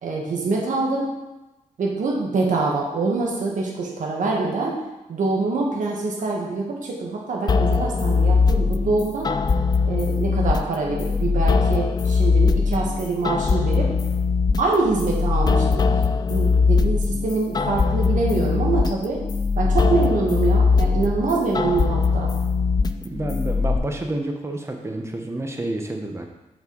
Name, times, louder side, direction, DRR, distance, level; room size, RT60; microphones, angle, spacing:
voice 1, 0.0-1.2 1.8-4.7 5.1-9.3 9.8-13.9 14.6-15.8 16.3-19.2 19.5-22.3, right 3 dB, 75° right, -1 dB, 1.5 m, -25 dB
sound 1, 7.5-23.8, left 4 dB, 30° left, 0.4 m, -21 dB
voice 2, 23.0-26.3, right 1 dB, 20° right, 3 dB, 1.0 m, -29 dB
6.5 x 6.0 x 4.0 m, 1.0 s
cardioid pair, 95°, 13 cm